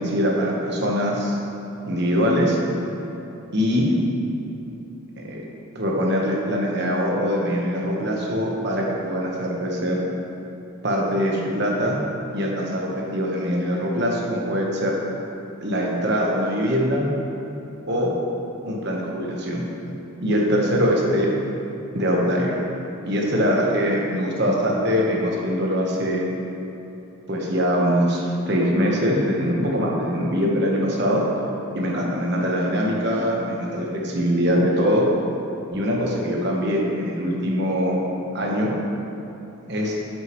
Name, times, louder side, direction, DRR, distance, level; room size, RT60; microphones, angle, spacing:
voice 1, 0.0-1.4 1.8-2.6 3.5-4.0 5.2-5.4 5.7-10.0 10.8-12.0 12.3-15.0 15.6-17.1 17.9-18.1 18.6-19.6 20.2-21.3 21.9-22.6 23.0-26.2 27.3-31.2 31.7-35.0 35.7-38.0 38.3-38.7 39.7-40.0, equal, 50° right, -2 dB, 1.2 m, -22 dB
10.0 x 6.5 x 3.1 m, 3.0 s
head